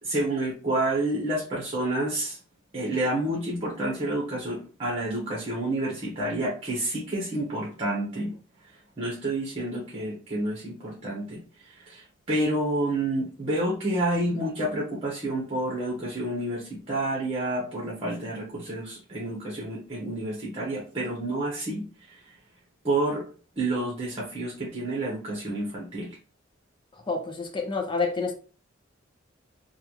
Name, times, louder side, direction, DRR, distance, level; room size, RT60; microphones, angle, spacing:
voice 1, 0.0-2.4 2.7-8.3 9.0-11.4 11.7-22.2 22.8-23.2 23.6-26.1, right 1 dB, 30° right, 1.1 m, -29 dB
voice 2, 27.1-28.3, left 4 dB, 25° left, 0.6 m, -28 dB
3.4 x 2.4 x 3.0 m
head